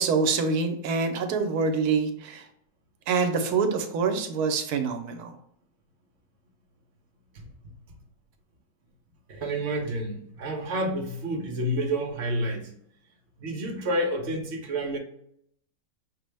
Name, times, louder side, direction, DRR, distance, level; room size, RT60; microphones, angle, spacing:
voice 1, 0.0-2.4 3.1-5.3, right 4 dB, 80° right, 6 dB, 1.1 m, -26 dB
voice 2, 9.3-12.7 13.4-15.0, right 1 dB, 55° right, 2 dB, 0.9 m, -29 dB
5.4 x 2.0 x 3.2 m, 0.69 s
omnidirectional pair, 1.7 m